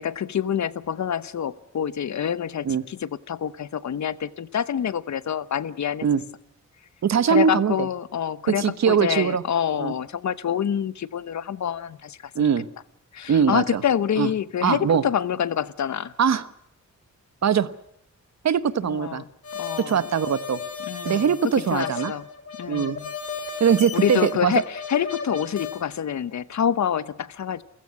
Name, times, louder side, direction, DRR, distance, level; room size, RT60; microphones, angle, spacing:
voice 1, 0.0-6.0 7.3-12.2 13.1-16.1 18.9-19.2 19.6-20.1 20.9-21.3 21.7-22.3 22.6-23.1 23.9-27.6, left 9 dB, 70° left, 17 dB, 0.9 m, -27 dB
voice 2, 7.0-7.9 8.5-9.4 9.8-9.9 12.3-12.7 13.3-13.8 14.2-14.3 14.6-15.0 16.2-16.5 17.4-17.7 18.4-19.2 19.8-20.6 21.0-22.1 22.7-23.0 23.6-24.5, right 7 dB, 65° right, 15 dB, 1.1 m, -21 dB
sound 1, 19.4-25.8, left 5 dB, 50° left, 3.9 m, -34 dB
28.5 x 16.0 x 9.7 m, 0.75 s
wide cardioid pair, 135°, 30 cm